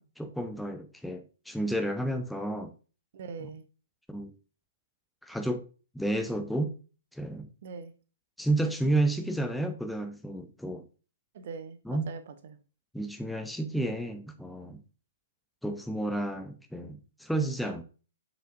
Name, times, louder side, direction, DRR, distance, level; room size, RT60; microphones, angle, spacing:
voice 1, 0.0-2.7 4.1-4.3 5.2-5.6 5.9-6.7 7.1-7.5 8.4-10.8 11.9-12.1 12.9-14.8 15.6-17.8, right 1 dB, ahead, 6 dB, 0.6 m, -31 dB
voice 2, 3.1-3.6 7.6-7.9 11.3-12.6, right 5 dB, 45° right, 11 dB, 0.7 m, -42 dB
7.5 x 5.1 x 2.6 m, 0.36 s
figure-of-eight pair, 115°, 0 cm